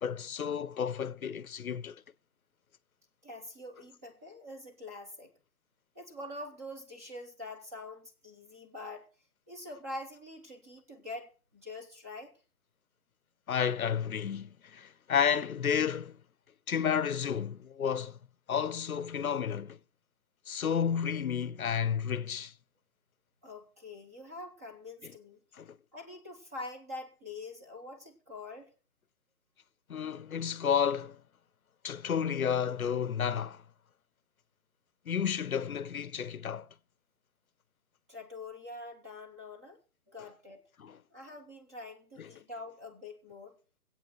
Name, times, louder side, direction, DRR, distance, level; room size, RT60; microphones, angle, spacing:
voice 1, 0.0-1.9 13.5-16.2 16.7-18.2 18.5-19.8 20.5-22.5 25.0-25.1 25.6-25.8 29.9-31.2 31.8-33.6 35.1-36.7 40.8-41.0 42.2-42.3, left 7 dB, 65° left, 0.8 m, -31 dB
voice 2, 3.2-5.3 5.9-9.1 9.5-12.3 23.4-25.4 25.9-28.7 38.1-39.8 40.1-40.6 41.1-43.6, left 2 dB, 10° right, 0.8 m, -45 dB
24.5 x 8.6 x 3.1 m
figure-of-eight pair, 155°, 47 cm